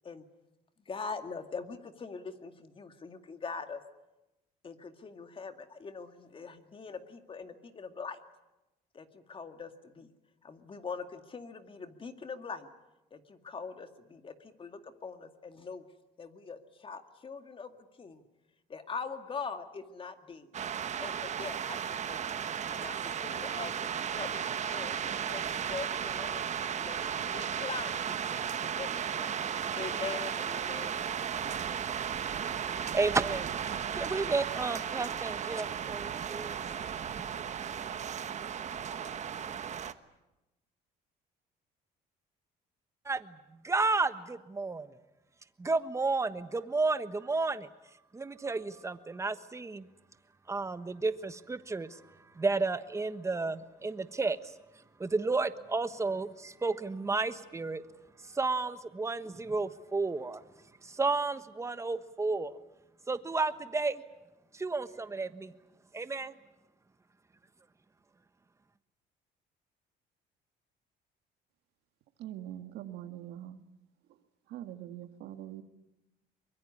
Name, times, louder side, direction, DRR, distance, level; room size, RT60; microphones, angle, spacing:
voice 1, 0.9-3.8 4.6-8.2 8.9-10.1 10.4-12.7 13.1-15.8 16.2-18.2 18.7-20.5 21.0-22.2 22.7-26.4 26.8-28.0 28.3-29.3 29.7-31.6, left 5 dB, 30° left, 8 dB, 2.1 m, -43 dB
sound 1, 20.5-39.9, right 8 dB, 45° right, 1.2 m, -35 dB
voice 2, 32.4-36.6 43.0-45.0 45.6-49.9 50.5-57.8 58.2-62.6 63.1-64.0 64.5-65.5 65.9-66.3, right 3 dB, 15° right, 12 dB, 1.3 m, -32 dB
voice 3, 72.2-73.6 74.5-75.6, right 12 dB, 80° right, 8 dB, 1.9 m, -43 dB
23.5 x 22.0 x 9.8 m, 0.99 s
cardioid pair, 110°, 17 cm